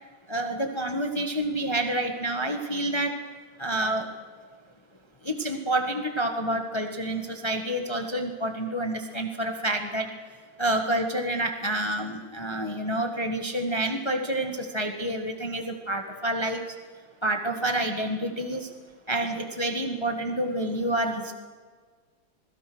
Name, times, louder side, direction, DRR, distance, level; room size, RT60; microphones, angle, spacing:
voice 1, 0.3-3.2 3.6-4.1 5.2-10.1 10.6-16.7 17.2-18.7 19.1-21.3, right 1 dB, 15° left, 5 dB, 1.7 m, -28 dB
27.5 x 21.5 x 6.3 m, 1.5 s
omnidirectional pair, 2.1 m